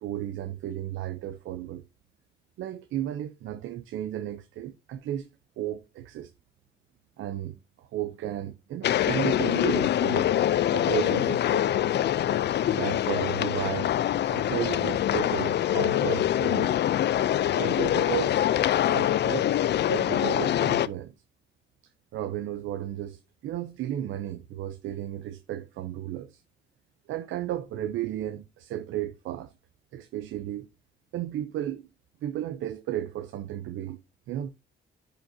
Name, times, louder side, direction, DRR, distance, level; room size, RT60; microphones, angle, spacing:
voice 1, 0.0-1.8 2.6-5.3 5.6-6.3 7.2-10.4 10.7-11.7 12.6-13.9 14.3-16.8 17.6-18.5 18.9-19.5 19.9-21.1 22.1-26.4 27.1-29.5 29.9-30.7 31.1-31.9 32.2-34.0 34.3-34.5, right 12 dB, 80° right, 0.7 m, -34 dB
sound 1, 8.8-20.9, left 11 dB, 60° left, 0.5 m, -24 dB
10.0 x 5.2 x 2.7 m
cardioid pair, 90°, 20 cm